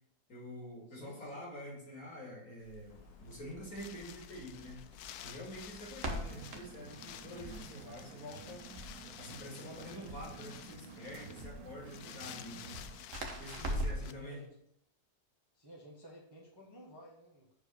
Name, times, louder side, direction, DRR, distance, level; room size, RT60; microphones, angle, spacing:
voice 1, 0.3-2.9 3.2-4.9 5.2-8.6 9.2-12.8 13.4-14.4, equal, 50° left, -3 dB, 3.1 m, -47 dB
voice 2, 0.9-1.4 14.0-14.5 15.5-17.5, equal, 15° right, -3 dB, 1.2 m, -54 dB
Crackle, 2.6-14.1, equal, 45° right, 1.5 m, -44 dB
Wind, 2.9-14.1, left 11 dB, 70° left, 0.9 m, -52 dB
sound 1, 6.0-13.0, right 8 dB, 65° right, 1.0 m, -52 dB
8.2 x 4.7 x 6.5 m, 0.72 s
omnidirectional pair, 2.0 m